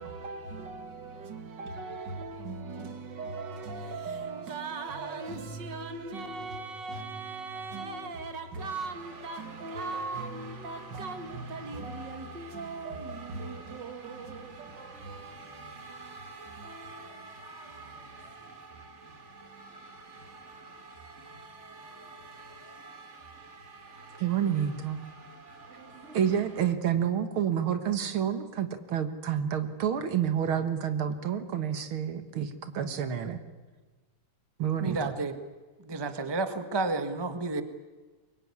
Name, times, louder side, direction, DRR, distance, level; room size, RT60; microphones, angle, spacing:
voice 1, 0.0-19.9, right 3 dB, 55° right, 2.4 m, -39 dB
sound 1, 8.6-26.7, right 3 dB, 35° right, 2.0 m, -48 dB
voice 2, 24.2-25.0 26.1-33.4 34.6-35.2, right 8 dB, 75° right, 2.2 m, -29 dB
voice 3, 34.8-35.4 35.8-37.6, right 3 dB, 15° right, 1.2 m, -31 dB
24.0 x 21.5 x 9.7 m
omnidirectional pair, 2.3 m